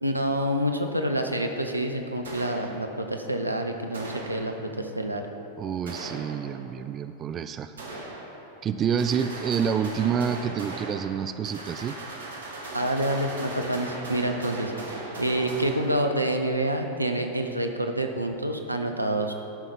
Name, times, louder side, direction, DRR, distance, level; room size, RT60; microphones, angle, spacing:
voice 1, 0.0-5.3 12.7-19.3, right 1 dB, 85° right, 5 dB, 0.8 m, -27 dB
sound 1, 2.2-3.2 3.9-4.9 5.9-6.8 7.8-8.7 9.0-16.5, right 2 dB, 70° right, 1.5 m, -38 dB
voice 2, 5.6-7.7 8.6-11.9, right 7 dB, 25° right, 10 dB, 0.3 m, -28 dB
13.0 x 5.7 x 5.4 m, 2.7 s
figure-of-eight pair, 90°, 0 cm